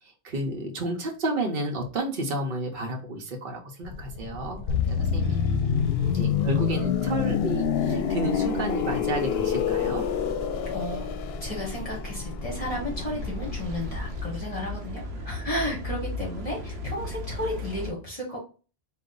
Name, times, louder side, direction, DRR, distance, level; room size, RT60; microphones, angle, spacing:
voice 1, 0.0-5.4 6.2-10.0, right 1 dB, 60° right, 1 dB, 0.9 m, -31 dB
sound 1, 3.8-14.2, left 1 dB, 55° left, 1.0 m, -38 dB
sound 2, 4.7-14.3 14.6-14.8, left 8 dB, 80° left, 0.8 m, -27 dB
voice 2, 5.2-6.3 10.6-11.1 11.4-18.5, left 1 dB, 35° left, -4 dB, 1.5 m, -33 dB
sound 3, 12.5-17.9, left 1 dB, 80° right, 0.9 m, -36 dB
3.9 x 2.4 x 3.7 m, 0.35 s
omnidirectional pair, 1.0 m